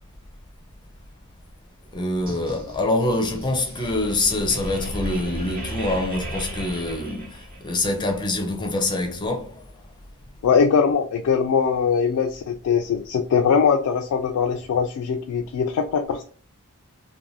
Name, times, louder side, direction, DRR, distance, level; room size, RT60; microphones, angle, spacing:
voice 1, 1.9-9.5, left 2 dB, 20° left, 0.4 m, -25 dB
sound 1, 2.2-7.9, right 1 dB, 40° right, 0.8 m, -35 dB
voice 2, 10.4-16.2, left 6 dB, 90° left, 0.3 m, -21 dB
2.5 x 2.1 x 3.1 m
head